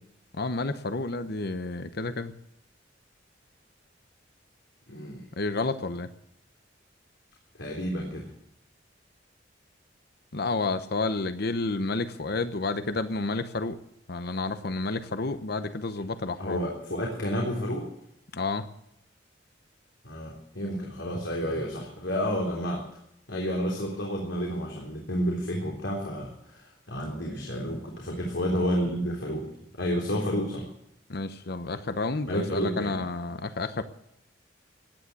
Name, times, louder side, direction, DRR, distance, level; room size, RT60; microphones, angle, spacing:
voice 1, 0.3-2.3 5.4-6.1 10.3-13.8 14.1-16.6 18.3-18.7 31.1-33.8, left 3 dB, 60° left, 11 dB, 0.9 m, -30 dB
voice 2, 4.9-5.2 7.6-8.3 16.4-17.9 20.0-22.8 23.3-29.5 29.8-30.7 32.3-33.0, equal, 80° left, -1 dB, 3.6 m, -30 dB
16.5 x 10.5 x 8.3 m, 0.78 s
head